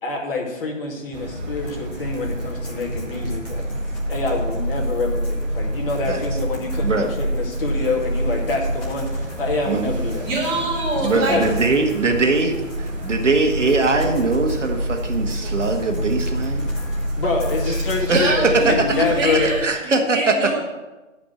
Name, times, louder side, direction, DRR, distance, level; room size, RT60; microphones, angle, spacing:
voice 1, 0.0-3.6 4.1-10.3 10.9-11.6 17.2-19.5, left 3 dB, 45° left, -1 dB, 2.4 m, -26 dB
sound 1, 1.1-19.7, equal, 35° right, 1.5 m, -27 dB
sound 2, 1.6-18.1, left 2 dB, 20° left, 2.2 m, -42 dB
voice 2, 10.2-11.4 17.7-20.6, right 1 dB, 15° right, -7 dB, 2.7 m, -24 dB
voice 3, 11.0-16.7 18.1-18.8 19.6-20.4, right 3 dB, 65° right, 3 dB, 1.7 m, -21 dB
11.5 x 5.1 x 7.5 m, 1.1 s
figure-of-eight pair, 145°, 39 cm